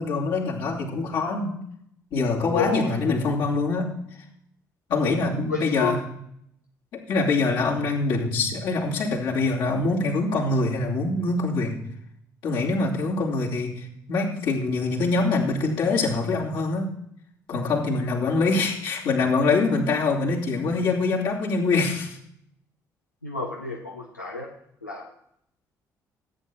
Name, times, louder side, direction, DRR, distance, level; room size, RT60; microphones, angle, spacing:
voice 1, 0.0-1.6 2.1-3.9 4.9-6.0 6.9-11.7 12.4-16.9 17.5-22.2, left 3 dB, 60° left, -4 dB, 2.7 m, -24 dB
voice 2, 2.5-3.0 5.0-5.2 5.5-6.0 23.2-24.5 24.8-25.1, left 4 dB, 90° left, -1 dB, 0.6 m, -30 dB
14.5 x 8.9 x 4.3 m, 0.73 s
figure-of-eight pair, 45°, 9 cm